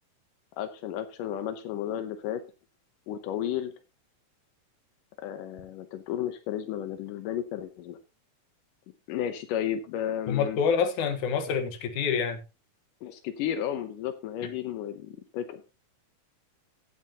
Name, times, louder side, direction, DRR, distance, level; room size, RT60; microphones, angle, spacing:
voice 1, 0.6-2.4 3.1-3.7 5.2-8.0 9.1-10.6 13.0-15.6, left 10 dB, 85° left, 2.5 m, -33 dB
voice 2, 10.3-12.4, left 6 dB, 70° left, 2.7 m, -27 dB
16.0 x 8.8 x 2.9 m
omnidirectional pair, 3.7 m